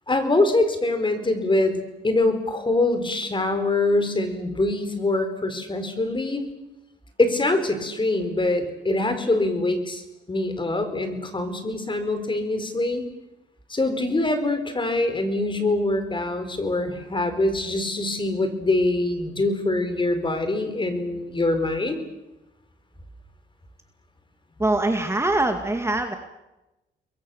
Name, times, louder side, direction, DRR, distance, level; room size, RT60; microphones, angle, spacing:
voice 1, 0.1-6.4 7.2-10.0 10.3-13.1 13.7-22.0, left 2 dB, 25° left, 9 dB, 4.7 m, -24 dB
voice 2, 24.6-26.2, right 2 dB, 15° right, 5 dB, 2.2 m, -23 dB
30.0 x 22.0 x 7.2 m, 1.0 s
cardioid pair, 90°, 20 cm